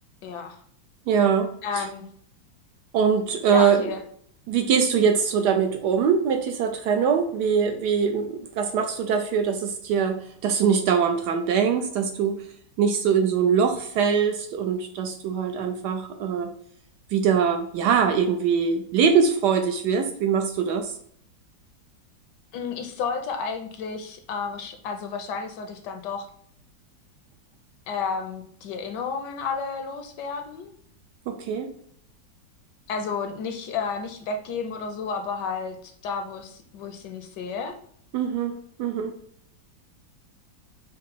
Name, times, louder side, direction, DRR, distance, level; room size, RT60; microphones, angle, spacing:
voice 1, 0.2-0.6 1.6-2.0 3.5-4.0 22.5-26.3 27.9-30.7 32.9-37.7, left 5 dB, 75° left, 5 dB, 1.1 m, -31 dB
voice 2, 1.1-1.9 2.9-3.9 4.5-12.4 12.8-16.5 17.1-20.9 31.3-31.7 38.1-38.5 38.8-39.1, right 6 dB, 75° right, 5 dB, 1.0 m, -23 dB
5.2 x 2.0 x 4.0 m, 0.65 s
omnidirectional pair, 2.0 m